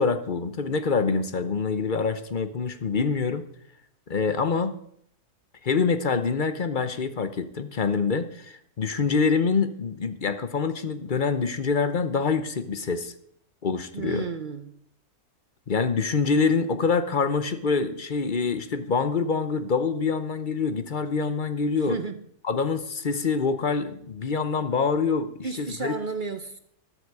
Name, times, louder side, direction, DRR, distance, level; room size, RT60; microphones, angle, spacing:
voice 1, 0.0-3.5 4.1-4.7 5.6-13.1 13.6-14.3 15.7-22.0 22.4-25.3 25.6-25.9, left 5 dB, 40° left, 11 dB, 0.8 m, -25 dB
voice 2, 13.9-14.7 21.8-22.3 25.4-26.6, right 4 dB, 40° right, 9 dB, 0.8 m, -32 dB
14.0 x 11.5 x 4.8 m, 0.67 s
omnidirectional pair, 1.6 m